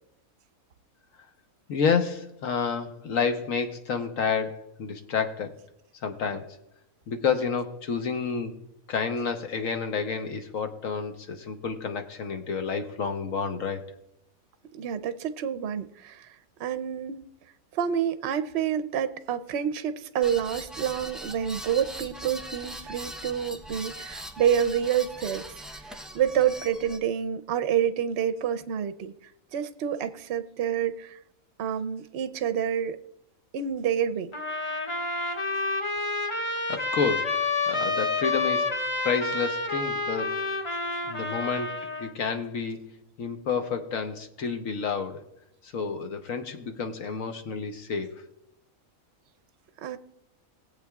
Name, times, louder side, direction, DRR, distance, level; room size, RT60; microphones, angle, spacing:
voice 1, 1.7-5.5 6.0-6.5 7.1-8.5 8.9-13.8 36.7-38.7 39.0-40.4 41.1-42.9 43.2-45.2 45.6-48.1, left 5 dB, 70° left, 7 dB, 1.3 m, -29 dB
voice 2, 14.7-16.3 16.6-17.2 17.7-25.6 26.1-29.1 29.5-31.2 31.6-33.0 33.5-34.3 49.8-50.0, right 9 dB, 60° right, 10 dB, 0.8 m, -28 dB
sound 1, 20.2-27.0, right 1 dB, ahead, 0.4 m, -40 dB
sound 2, 34.3-42.1, left 3 dB, 30° left, 0.7 m, -29 dB
20.0 x 8.0 x 2.3 m, 0.82 s
omnidirectional pair, 1.5 m